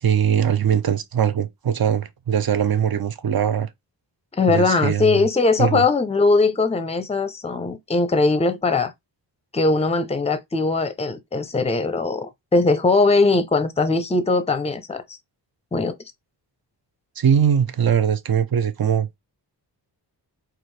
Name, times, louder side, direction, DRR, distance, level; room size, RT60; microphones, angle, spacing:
voice 1, 0.0-3.7 4.5-5.2 5.6-5.8 17.2-19.2, right 8 dB, 55° right, 0.7 m, -21 dB
voice 2, 4.3-8.9 9.5-15.0 15.7-15.9, left 3 dB, 15° left, 0.5 m, -20 dB
4.4 x 2.6 x 3.2 m
wide cardioid pair, 130°, 43 cm